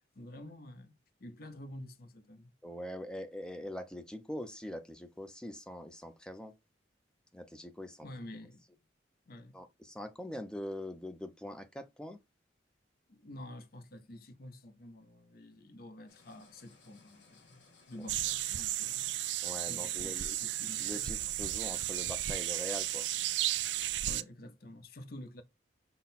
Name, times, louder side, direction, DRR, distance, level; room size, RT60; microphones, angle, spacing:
voice 1, 0.1-2.5 8.0-8.6 9.3-9.6 13.1-19.2 19.7-21.2 23.6-25.4, left 1 dB, 55° left, 0.7 m, -49 dB
voice 2, 2.6-6.5 7.3-8.1 9.5-12.2 19.4-20.4 20.8-23.1, equal, 5° left, 0.5 m, -43 dB
sound 1, 16.1-23.9, left 3 dB, 90° left, 1.5 m, -62 dB
sound 2, 18.1-24.2, right 13 dB, 75° right, 0.4 m, -34 dB
5.7 x 2.2 x 4.0 m
head